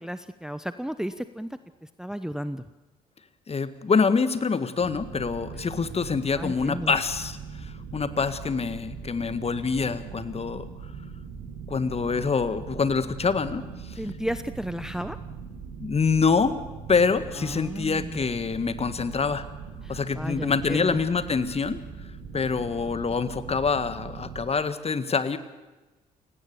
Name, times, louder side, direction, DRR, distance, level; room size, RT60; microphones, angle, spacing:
voice 1, 0.0-1.5 1.8-2.6 6.3-7.0 13.9-15.2 17.4-18.2 19.8-21.0, equal, 5° right, 13 dB, 0.9 m, -33 dB
voice 2, 3.5-10.7 11.7-14.0 15.8-16.6 16.9-19.5 19.9-21.8 22.3-25.4, left 5 dB, 30° left, 13 dB, 1.7 m, -26 dB
sound 1, 4.8-24.4, right 6 dB, 65° right, 7.2 m, -41 dB
29.0 x 18.0 x 7.0 m, 1.1 s
figure-of-eight pair, 45°, 20 cm